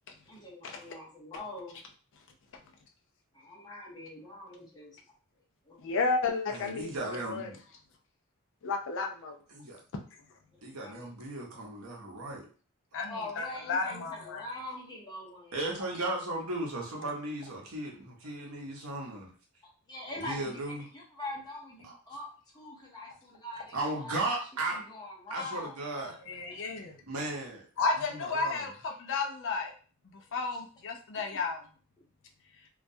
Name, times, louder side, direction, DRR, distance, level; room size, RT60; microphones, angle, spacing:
voice 1, 0.3-1.8 3.3-5.0 5.6-5.8 10.7-11.1 13.1-15.6 19.9-22.3 22.5-26.2, left 2 dB, 20° left, -3 dB, 0.7 m, -43 dB
voice 2, 5.8-7.5 8.6-9.4 12.9-14.4 26.3-27.0 27.8-29.7 30.1-31.6, left 4 dB, 55° left, 4 dB, 0.4 m, -32 dB
voice 3, 6.5-7.6 9.5-9.8 10.6-12.5 15.5-19.3 20.2-20.9 23.7-24.8 25.3-26.1 27.1-27.6 28.1-28.6, right 2 dB, 70° right, -1 dB, 0.8 m, -36 dB
2.3 x 2.1 x 2.6 m, 0.39 s
head